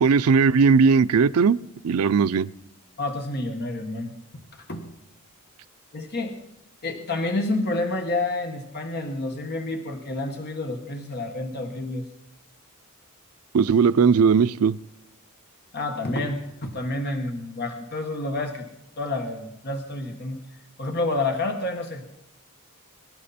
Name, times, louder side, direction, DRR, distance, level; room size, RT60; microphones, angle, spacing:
voice 1, 0.0-1.6 1.8-2.5 13.5-14.8, right 5 dB, 85° right, 0.4 m, -18 dB
voice 2, 3.0-4.1 4.7-4.8 5.9-6.3 6.8-12.1 15.7-18.7 19.0-20.4 20.8-22.0, left 2 dB, 50° left, 1.6 m, -29 dB
24.0 x 12.5 x 4.3 m
head